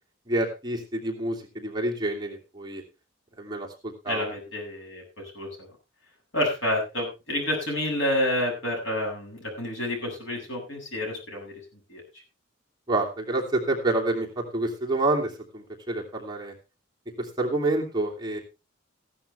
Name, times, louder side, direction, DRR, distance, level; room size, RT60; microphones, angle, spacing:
voice 1, 0.3-2.8 3.4-4.2 12.9-16.5 17.2-18.4, right 2 dB, 20° right, -1 dB, 2.7 m, -28 dB
voice 2, 4.1-5.5 6.3-11.5 11.9-12.0, left 1 dB, 70° left, 0 dB, 7.7 m, -29 dB
15.5 x 11.5 x 3.4 m, 0.28 s
head